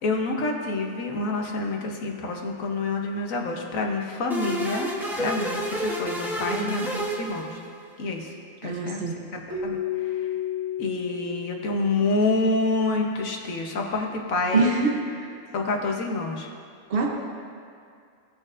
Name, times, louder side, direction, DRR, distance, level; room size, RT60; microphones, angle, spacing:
voice 1, 0.0-4.9 5.2-7.6 8.0-8.3 8.6-9.0 9.3-10.3 10.8-14.8 15.5-16.5, left 3 dB, 90° left, 1 dB, 1.4 m, -28 dB
sound 1, 4.3-7.9, right 1 dB, ahead, 0.8 m, -30 dB
voice 2, 6.5-6.9 8.6-9.2 14.5-15.3 16.9-17.2, right 3 dB, 50° right, 1 dB, 1.1 m, -25 dB
Keyboard (musical), 9.5-12.3, left 8 dB, 80° right, 1.6 m, -31 dB
17.0 x 6.5 x 2.5 m, 2.3 s
omnidirectional pair, 1.4 m